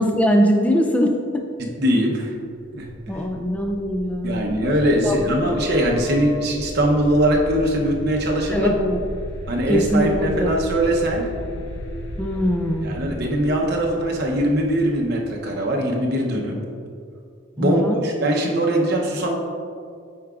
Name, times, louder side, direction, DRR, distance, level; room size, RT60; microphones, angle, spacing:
voice 1, 0.0-1.4 3.1-4.4 5.0-5.3 8.5-9.0 9.7-10.6 12.2-13.0 17.6-18.0, equal, 5° left, 2 dB, 0.4 m, -21 dB
voice 2, 1.6-2.3 2.7-2.9 3.1-3.2 4.2-8.7 9.5-11.2 12.8-16.6 17.6-19.3, right 1 dB, 50° right, 0 dB, 0.8 m, -21 dB
sound 1, 2.5-16.2, left 2 dB, 60° left, 0.6 m, -34 dB
8.6 x 4.6 x 2.4 m, 2.3 s
head